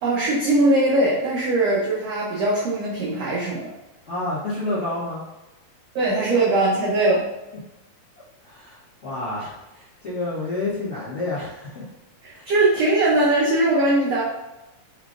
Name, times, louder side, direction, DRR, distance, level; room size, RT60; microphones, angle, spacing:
voice 1, 0.0-3.7 5.9-7.3 12.2-14.2, right 2 dB, 85° right, -6 dB, 1.4 m, -20 dB
voice 2, 4.0-5.2 8.4-11.9 12.3-12.5, left 2 dB, 65° left, -12 dB, 0.7 m, -29 dB
5.4 x 3.8 x 2.5 m, 1.0 s
omnidirectional pair, 4.0 m